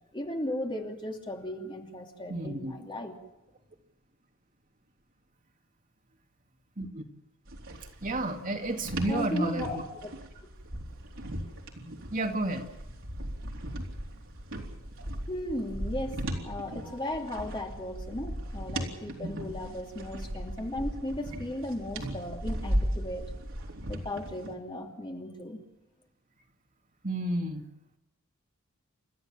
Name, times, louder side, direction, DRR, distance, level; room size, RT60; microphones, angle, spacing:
voice 1, 0.1-3.2 9.1-9.8 15.3-23.2 23.9-25.6, left 1 dB, 25° left, 2 dB, 2.8 m, -36 dB
voice 2, 2.3-2.7 6.8-7.0 8.0-9.8 12.1-12.6 19.2-19.4 27.0-27.6, right 1 dB, 40° right, 3 dB, 2.3 m, -31 dB
sound 1, 7.5-24.5, right 1 dB, 65° right, 3.9 m, -37 dB
29.5 x 13.5 x 7.4 m, 0.93 s
head